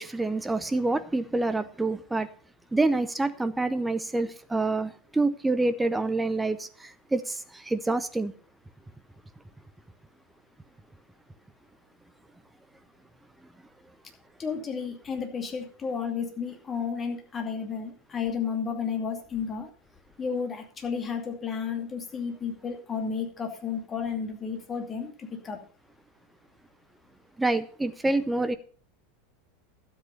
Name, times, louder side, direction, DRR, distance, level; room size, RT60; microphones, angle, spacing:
voice 1, 0.0-2.3 2.7-8.3 27.4-28.5, right 2 dB, 10° right, 0.7 m, -27 dB
voice 2, 14.4-19.7 20.2-25.1 25.4-25.6, left 6 dB, 25° left, 2.5 m, -32 dB
12.5 x 8.1 x 5.5 m
figure-of-eight pair, 85°, 0 cm